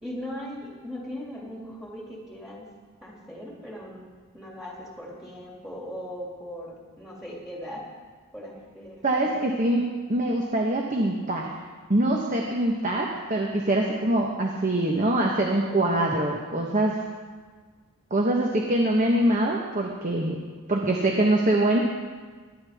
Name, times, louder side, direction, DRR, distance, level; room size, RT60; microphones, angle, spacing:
voice 1, 0.0-2.7 3.0-4.1 4.3-7.8 8.3-9.5 14.5-15.0, equal, ahead, -4 dB, 2.5 m, -39 dB
voice 2, 9.0-11.5 11.9-16.9 18.1-20.4 20.7-21.8, right 1 dB, 35° right, 0 dB, 1.1 m, -24 dB
21.0 x 10.0 x 3.6 m, 1.5 s
head